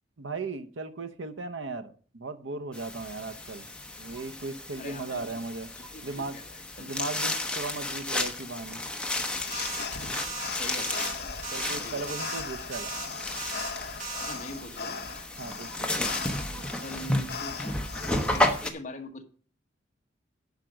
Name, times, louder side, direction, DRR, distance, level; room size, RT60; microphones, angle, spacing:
voice 1, 0.2-3.7 4.0-5.7 6.0-6.4 6.8-8.8 11.5-12.9 15.4-15.9, right 3 dB, 85° right, 9 dB, 0.8 m, -37 dB
sound 1, 2.7-18.7, left 1 dB, 5° left, 0.9 m, -33 dB
voice 2, 4.8-5.2 5.8-6.9 9.9-11.3 11.8-12.1 14.2-15.0 15.9-17.8 18.3-19.2, left 1 dB, 40° left, 4 dB, 1.2 m, -43 dB
sound 2, 9.1-18.4, left 5 dB, 55° left, 1.0 m, -40 dB
sound 3, 9.5-9.9 10.1-10.5 10.8-11.1 11.4-11.8 12.1-12.4 12.7-13.1 13.4-13.7 14.0-14.4, right 2 dB, 45° right, 2.4 m, -36 dB
10.5 x 5.2 x 6.3 m, 0.43 s
head